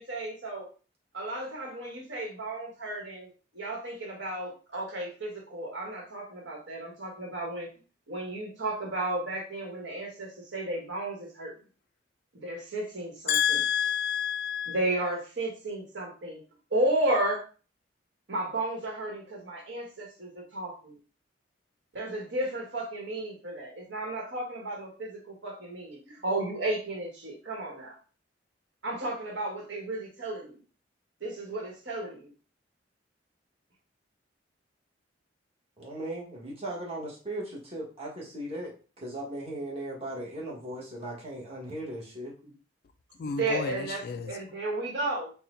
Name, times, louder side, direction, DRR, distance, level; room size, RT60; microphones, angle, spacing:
voice 1, 0.0-0.7 1.1-7.7 8.1-11.6 12.3-13.6 14.7-16.4 16.7-17.4 18.3-21.0 21.9-28.0 28.8-30.6 31.2-32.3 42.4-42.5 43.2-45.3, right 2 dB, 70° right, 1.4 m, -33 dB
voice 2, 13.3-14.8 43.2-44.3, left 8 dB, 55° left, 0.4 m, -29 dB
voice 3, 35.8-38.7 39.0-42.3, right 1 dB, 35° right, 1.3 m, -37 dB
4.1 x 2.2 x 3.7 m
head